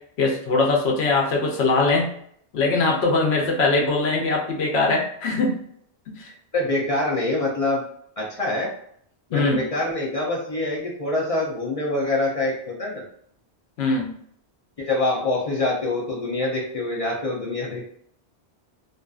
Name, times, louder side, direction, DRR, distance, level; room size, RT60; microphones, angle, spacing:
voice 1, 0.2-2.1 2.5-5.6 6.1-6.3 9.3-9.7 13.8-14.1, left 3 dB, 75° left, 1 dB, 0.9 m, -21 dB
voice 2, 6.5-7.8 8.2-8.7 9.3-13.0 14.8-17.9, left 2 dB, 50° left, -3 dB, 0.4 m, -25 dB
2.4 x 2.4 x 2.3 m, 0.66 s
omnidirectional pair, 1.1 m